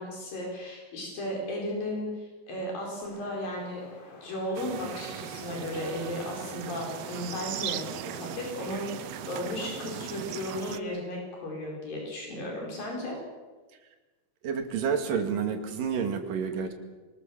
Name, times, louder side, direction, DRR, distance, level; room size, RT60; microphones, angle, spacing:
voice 1, 0.0-3.8 4.2-8.9 9.3-13.2, left 1 dB, 80° left, -1 dB, 6.9 m, -35 dB
Wind, 3.0-10.7, left 2 dB, 65° left, 6.0 m, -49 dB
sound 1, 4.5-10.8, right 11 dB, 90° right, 1.4 m, -38 dB
voice 2, 14.4-16.7, right 6 dB, 70° right, 5 dB, 3.8 m, -29 dB
24.5 x 19.5 x 7.4 m, 1.3 s
omnidirectional pair, 4.0 m